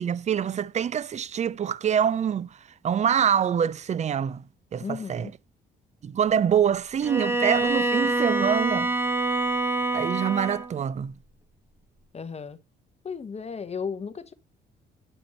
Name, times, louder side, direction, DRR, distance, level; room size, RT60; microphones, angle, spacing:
voice 1, 0.0-4.4 4.7-5.3 6.0-9.4 9.9-11.1, right 8 dB, 35° right, 0.4 m, -25 dB
voice 2, 4.8-5.3 12.1-12.6 13.0-14.3, left 6 dB, 30° left, 1.0 m, -34 dB
Bowed string instrument, 7.0-10.8, right 2 dB, 10° right, 1.0 m, -26 dB
8.7 x 5.0 x 2.9 m
cardioid pair, 90°, 20 cm